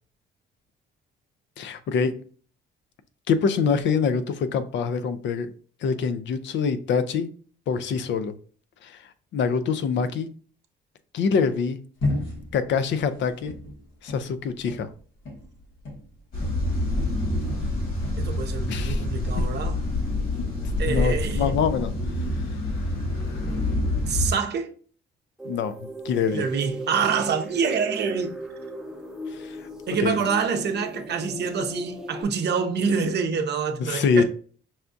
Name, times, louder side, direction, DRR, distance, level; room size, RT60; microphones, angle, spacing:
voice 1, 1.6-2.1 3.3-5.5 5.8-7.3 7.7-8.3 8.8-9.0 9.3-10.3 11.1-11.8 12.5-13.5 14.0-14.9 18.7-19.0 19.4-19.5 20.9-21.9 25.4-26.4 29.3-29.6 29.9-30.2 33.8-34.2, left 5 dB, 70° left, 0.5 m, -25 dB
sound 1, 12.0-16.7 17.0-18.3, left 2 dB, 90° left, 1.4 m, -33 dB
sound 2, 16.3-24.3, left 2 dB, 45° left, 1.6 m, -27 dB
voice 2, 18.2-19.8 20.8-21.5 24.1-24.7 26.3-28.4 29.9-34.2, right 6 dB, 60° right, 0.6 m, -26 dB
sound 3, 25.4-32.2, right 1 dB, 5° right, 0.7 m, -37 dB
5.6 x 2.3 x 2.5 m
cardioid pair, 90°, 20 cm